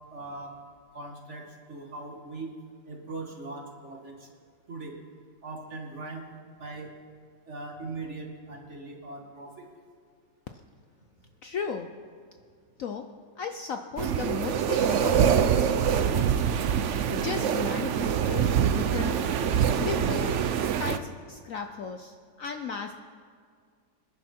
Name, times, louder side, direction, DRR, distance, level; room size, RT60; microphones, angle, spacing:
voice 1, 0.1-0.6 0.9-2.5 2.9-4.3 4.7-4.9 5.4-6.3 6.6-6.9 7.5-9.7, right 3 dB, 40° right, 1 dB, 2.1 m, -40 dB
voice 2, 11.4-11.9 12.8-16.4 17.1-19.4 19.8-22.9, left 6 dB, 60° left, 6 dB, 0.9 m, -36 dB
sound 1, 14.0-21.0, right 8 dB, 65° right, 0.7 m, -25 dB
26.0 x 11.0 x 4.4 m, 2.1 s
omnidirectional pair, 1.9 m